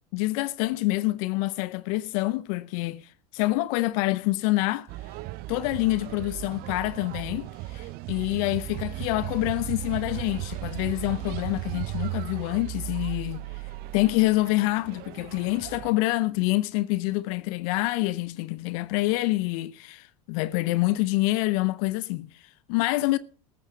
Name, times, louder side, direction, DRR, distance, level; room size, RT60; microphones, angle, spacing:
voice 1, 0.1-4.9 5.5-13.6 13.9-23.2, left 19 dB, 60° left, 0.7 m, -27 dB
sound 1, 4.9-15.9, right 17 dB, 50° right, 0.7 m, -36 dB
14.0 x 14.0 x 3.6 m
hypercardioid pair, 80°, 20 cm